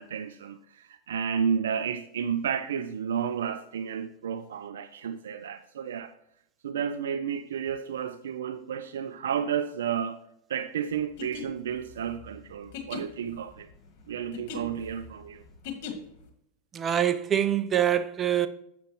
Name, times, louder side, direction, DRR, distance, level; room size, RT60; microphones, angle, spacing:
voice 1, 0.0-6.1 6.6-10.2 10.5-13.7 14.1-15.4, right 7 dB, 85° right, 0.4 m, -32 dB
sound 1, 11.0-16.3, left 7 dB, 60° left, 1.7 m, -40 dB
voice 2, 16.7-18.5, right 10 dB, 25° right, 0.5 m, -25 dB
7.7 x 6.8 x 3.0 m
hypercardioid pair, 110°, 0 cm